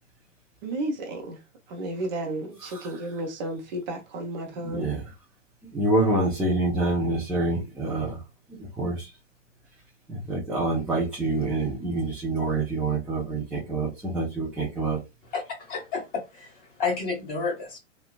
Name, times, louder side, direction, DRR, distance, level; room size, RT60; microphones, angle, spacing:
voice 1, 0.6-1.4 1.7-4.9, right 1 dB, 35° right, 0.8 m, -32 dB
voice 2, 4.6-5.0 5.6-8.2 8.5-9.1 10.1-15.0, right 2 dB, 5° right, 0.6 m, -26 dB
voice 3, 15.3-17.8, left 4 dB, 25° left, 1.5 m, -31 dB
3.2 x 2.2 x 2.2 m
figure-of-eight pair, 105°, 37 cm